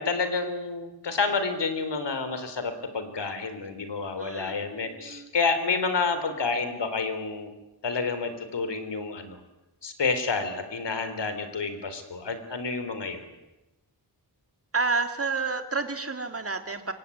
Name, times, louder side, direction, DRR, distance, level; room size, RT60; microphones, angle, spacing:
voice 1, 0.0-7.5 7.8-9.4 9.8-13.3, left 4 dB, 80° left, 10 dB, 4.0 m, -29 dB
voice 2, 4.2-5.3 14.7-16.9, right 4 dB, 35° right, 7 dB, 2.9 m, -30 dB
25.5 x 23.0 x 10.0 m, 0.98 s
wide cardioid pair, 100°, 41 cm